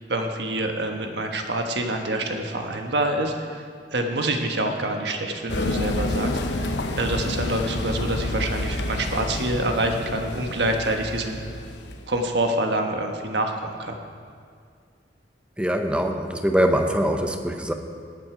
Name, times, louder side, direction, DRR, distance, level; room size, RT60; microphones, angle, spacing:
voice 1, 0.1-3.6 3.9-11.4 12.1-13.9, right 1 dB, 70° right, 3 dB, 1.3 m, -26 dB
sound 1, 5.5-12.2, left 1 dB, 80° left, 0.9 m, -29 dB
voice 2, 15.6-17.7, equal, 5° right, 5 dB, 0.7 m, -23 dB
19.0 x 7.8 x 5.0 m, 2.2 s
head